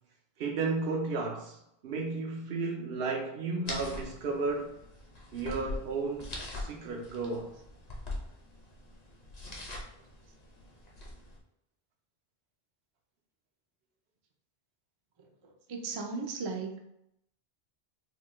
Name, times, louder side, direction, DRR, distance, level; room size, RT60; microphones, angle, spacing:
voice 1, 0.4-4.7 5.3-7.5, right 3 dB, 75° right, 0.9 m, -33 dB
sound 1, 3.7-11.4, left 1 dB, 45° left, 0.8 m, -43 dB
voice 2, 15.4-16.8, right 4 dB, 45° right, 0.4 m, -36 dB
4.1 x 2.2 x 3.0 m
omnidirectional pair, 1.0 m